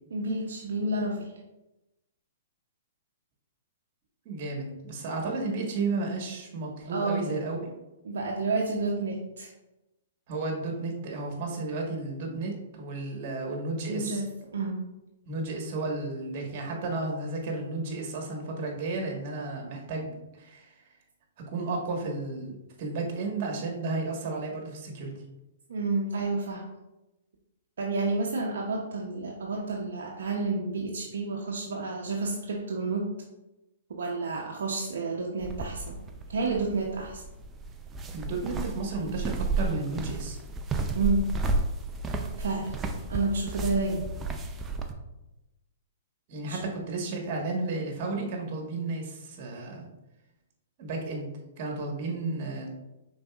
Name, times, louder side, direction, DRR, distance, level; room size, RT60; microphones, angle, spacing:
voice 1, 0.1-1.3 6.9-7.2 8.0-9.5 13.9-14.3 14.5-14.8 25.7-26.7 27.8-33.1 34.0-36.0 36.3-37.2 40.9-41.2 42.4-42.8 43.1-44.1 46.5-46.6, right 3 dB, 75° right, -1 dB, 0.6 m, -30 dB
voice 2, 4.2-7.7 10.3-14.2 15.3-20.7 21.5-25.1 38.1-40.4 46.3-49.9 50.8-51.3 51.6-52.7, right 3 dB, 45° right, 1 dB, 1.3 m, -33 dB
sound 1, 35.4-44.9, right 3 dB, 15° right, 0.5 m, -32 dB
5.2 x 3.9 x 2.3 m, 0.97 s
hypercardioid pair, 135°, 0 cm